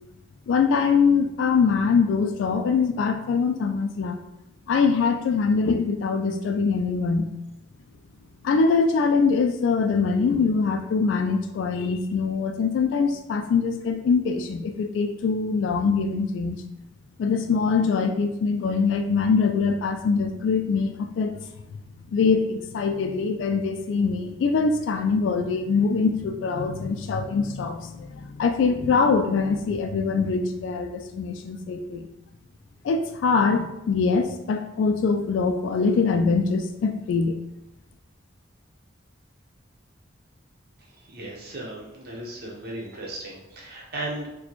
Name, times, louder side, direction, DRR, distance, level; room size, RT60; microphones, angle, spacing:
voice 1, 0.5-4.2 4.7-7.3 8.4-16.6 17.2-21.3 22.1-32.1 32.8-37.4, left 5 dB, 85° left, 5 dB, 0.3 m, -23 dB
voice 2, 40.8-44.3, right 2 dB, 55° right, -3 dB, 0.9 m, -36 dB
4.0 x 2.2 x 3.0 m, 0.90 s
head